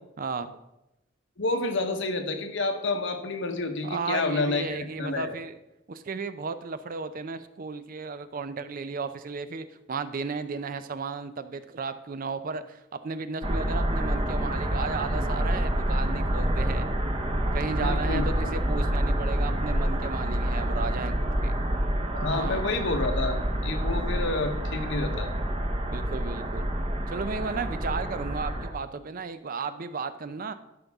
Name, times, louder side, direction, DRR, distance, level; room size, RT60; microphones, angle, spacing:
voice 1, 0.2-0.6 3.8-5.5 5.9-16.9 17.5-21.2 21.4-21.5 22.2-22.7 25.9-26.7 27.1-30.5, right 4 dB, 45° right, 11 dB, 0.5 m, -34 dB
voice 2, 1.4-5.3 17.8-18.5 22.1-25.3, left 3 dB, 65° left, 6 dB, 1.1 m, -29 dB
sound 1, 13.4-28.7, right 1 dB, 30° right, 0.9 m, -27 dB
12.5 x 5.5 x 3.5 m, 0.92 s
head